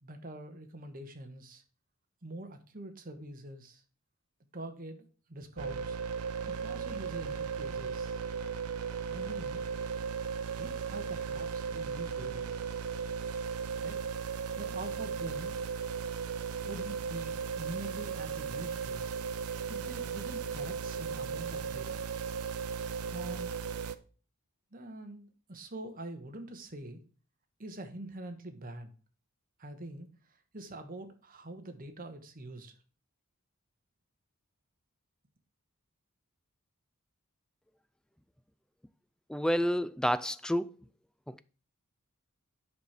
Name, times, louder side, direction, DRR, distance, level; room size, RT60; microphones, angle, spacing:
voice 1, 0.0-1.6 2.2-3.8 4.5-6.0 6.4-8.2 9.0-9.6 10.5-12.5 13.8-14.0 14.6-15.6 16.6-19.1 19.7-22.0 23.1-23.5 24.7-27.0 27.6-28.9 29.6-32.7, right 1 dB, 40° right, 1.4 m, -45 dB
sound 1, 5.6-24.0, right 6 dB, 85° right, 0.7 m, -36 dB
voice 2, 39.3-40.7 41.3-41.4, equal, 5° left, 0.3 m, -29 dB
9.5 x 6.1 x 4.9 m
head